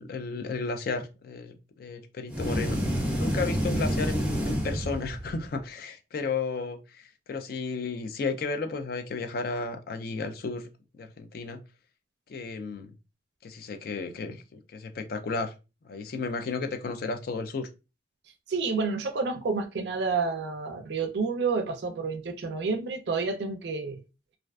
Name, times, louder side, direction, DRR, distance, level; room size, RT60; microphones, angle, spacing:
voice 1, 0.0-2.8 3.2-10.7 10.9-11.6 12.3-12.9 13.4-15.5 15.8-17.7, left 4 dB, 50° left, 0.3 m, -33 dB
sound 1, 2.3-5.5, equal, 10° right, 0.5 m, -28 dB
voice 2, 18.5-24.0, right 4 dB, 60° right, 0.4 m, -29 dB
2.4 x 2.2 x 2.3 m
head